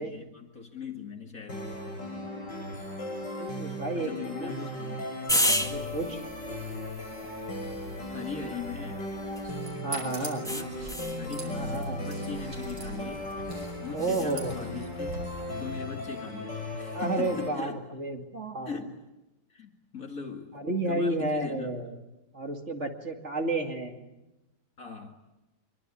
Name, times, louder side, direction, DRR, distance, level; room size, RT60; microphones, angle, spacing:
voice 1, 0.0-1.6 3.9-5.1 8.1-9.0 10.4-10.8 11.2-13.3 13.8-15.2 15.6-17.8 18.7-19.0 19.5-20.6 20.9-21.7 24.8-25.2, left 5 dB, 50° left, 3 dB, 2.5 m, -40 dB
sound 1, 1.5-17.5, left 1 dB, 75° left, 8.8 m, -37 dB
voice 2, 3.4-4.5 5.7-6.2 9.8-10.5 11.5-12.0 13.9-14.7 16.9-18.7 20.5-21.9 22.3-24.1, right 2 dB, 40° right, 4 dB, 2.7 m, -31 dB
sound 2, 5.3-9.7 10.4-11.2 14.0-14.3, equal, ahead, 1.6 m, -33 dB
sound 3, 9.3-15.2, right 3 dB, 75° right, 6.6 m, -43 dB
26.0 x 23.0 x 9.9 m, 0.98 s
omnidirectional pair, 1.9 m